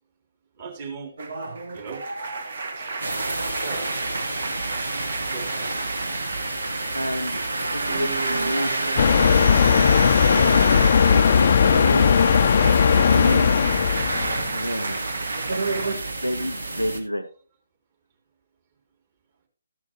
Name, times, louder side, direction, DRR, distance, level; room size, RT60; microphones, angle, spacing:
voice 1, 0.6-1.1 1.7-2.0 2.8-3.9 4.3-4.4 5.2-5.7, right 5 dB, 35° right, 5 dB, 2.8 m, -39 dB
sound 1, 1.2-9.9 10.2-16.0, right 4 dB, 50° right, 1.5 m, -33 dB
sound 2, 3.0-17.0, right 2 dB, 70° right, 2.0 m, -29 dB
voice 2, 7.0-7.4 7.7-8.7 10.3-10.7 11.0-12.1 12.9-13.5 14.5-15.0 15.5-15.6 16.2-17.3, equal, 90° right, 9 dB, 1.1 m, -29 dB
sound 3, 9.0-14.5, left 7 dB, 40° left, 0.5 m, -18 dB
13.5 x 10.5 x 2.9 m, 0.34 s
figure-of-eight pair, 140°, 0 cm